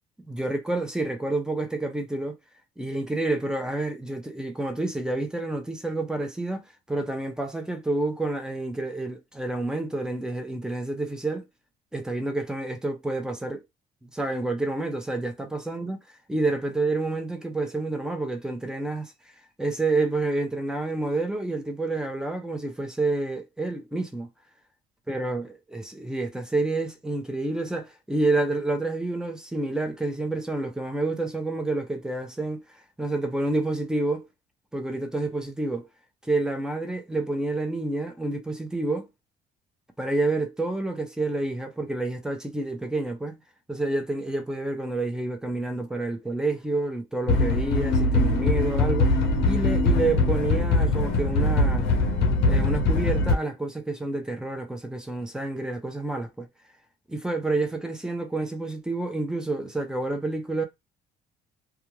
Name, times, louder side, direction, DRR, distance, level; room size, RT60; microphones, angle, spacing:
voice 1, 0.2-2.4 2.8-11.5 11.9-13.6 14.0-16.0 16.3-19.1 19.6-24.3 25.1-32.6 33.0-34.3 34.7-35.9 36.3-39.1 40.0-43.4 43.7-49.1 49.4-51.9 52.5-56.5 57.1-60.6, right 2 dB, 5° right, 0.7 m, -29 dB
sound 1, 47.3-53.3, left 2 dB, 90° left, 0.6 m, -22 dB
2.4 x 2.3 x 3.1 m
cardioid pair, 110°, 17 cm